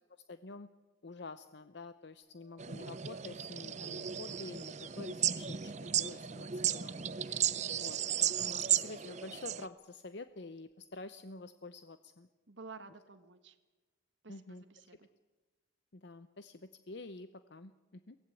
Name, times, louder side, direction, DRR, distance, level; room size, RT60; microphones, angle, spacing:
voice 1, 0.3-0.7 1.0-12.3 14.3-14.9 15.9-18.2, left 3 dB, 60° left, 11 dB, 0.8 m, -49 dB
sound 1, 2.2-8.4 10.7-10.8 10.9-11.0, right 6 dB, 35° left, 8.0 m, -63 dB
sound 2, 2.6-9.7, right 10 dB, 35° right, 0.6 m, -35 dB
voice 2, 12.5-13.6 14.2-15.1, right 4 dB, 70° right, 9 dB, 1.4 m, -52 dB
23.5 x 18.0 x 8.4 m, 1.2 s
head